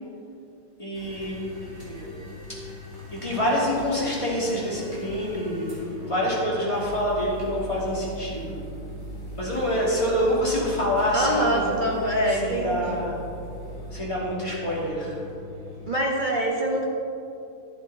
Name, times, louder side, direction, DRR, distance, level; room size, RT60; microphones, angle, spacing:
voice 1, 0.8-2.1 3.1-8.6 9.4-11.8 12.3-13.2 13.9-15.2, equal, 15° left, -6 dB, 2.6 m, -27 dB
sound 1, 0.9-15.9, equal, 20° right, 2.6 m, -39 dB
voice 2, 11.1-13.0 15.9-16.9, right 1 dB, 40° right, -2 dB, 0.7 m, -24 dB
11.0 x 11.0 x 4.1 m, 2.7 s
omnidirectional pair, 2.4 m